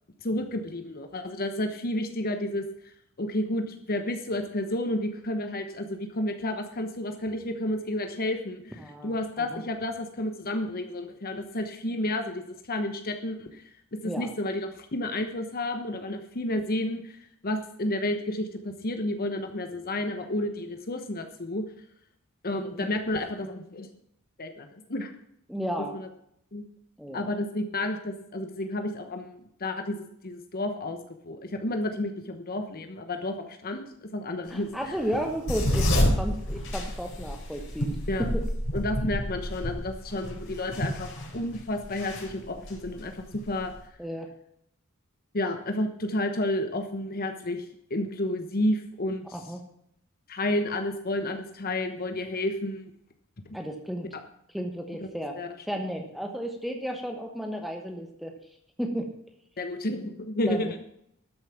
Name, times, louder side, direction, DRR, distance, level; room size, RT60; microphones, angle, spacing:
voice 1, 0.2-2.6 3.2-13.6 14.0-21.6 22.4-23.9 24.4-25.1 25.9-26.1 26.5-26.7 27.1-31.0 31.2-33.8 34.1-34.9 38.1-38.3 38.7-43.7 45.3-49.2 50.3-52.8 55.4-55.5 59.6-60.8, left 1 dB, 45° left, 6 dB, 1.1 m, -31 dB
voice 2, 8.8-9.6 14.0-14.3 22.6-22.9 25.5-26.0 27.0-27.3 34.5-38.4 40.2-40.4 44.0-44.3 49.3-49.6 53.5-54.1 54.5-55.4 55.7-58.3 58.8-59.1 60.5-60.7, equal, ahead, 3 dB, 1.1 m, -33 dB
sound 1, 34.9-43.8, equal, 65° left, 4.3 m, -29 dB
12.5 x 7.3 x 7.2 m, 0.74 s
head